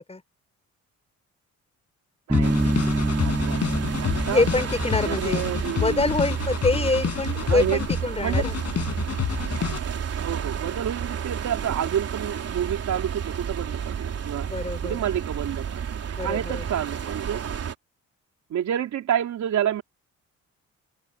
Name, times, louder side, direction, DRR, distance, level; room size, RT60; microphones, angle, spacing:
sound 1, 2.3-8.0 8.3-9.8, left 8 dB, 55° left, 5.9 m, -29 dB
Bass guitar, 2.3-6.0, right 1 dB, 10° right, 5.0 m, -27 dB
voice 1, 2.3-4.4 5.0-6.1 7.4-7.8 8.2-8.4 10.2-17.5 18.5-19.8, right 10 dB, 70° right, 3.4 m, -29 dB
sound 2, 2.4-17.7, right 7 dB, 55° right, 3.4 m, -31 dB
voice 2, 4.3-5.5 5.8-8.5 14.4-15.0 16.2-16.6, left 3 dB, 20° left, 5.7 m, -25 dB
cardioid pair, 90°, 30 cm